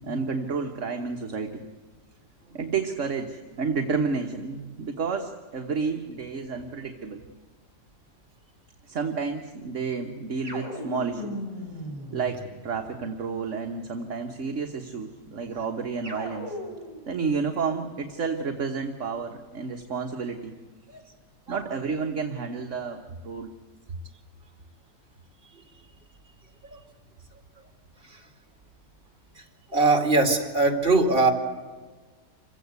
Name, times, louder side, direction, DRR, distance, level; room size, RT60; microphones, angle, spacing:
voice 1, 0.0-1.6 2.5-7.3 8.9-11.4 12.1-16.6 17.1-20.6 21.5-23.5, right 5 dB, 50° right, 4 dB, 1.6 m, -30 dB
sound 1, 10.4-12.9 16.0-17.1, equal, 15° right, 5.5 m, -37 dB
voice 2, 29.7-31.3, right 3 dB, 35° right, 4 dB, 2.8 m, -21 dB
27.0 x 16.5 x 8.2 m, 1.4 s
omnidirectional pair, 1.8 m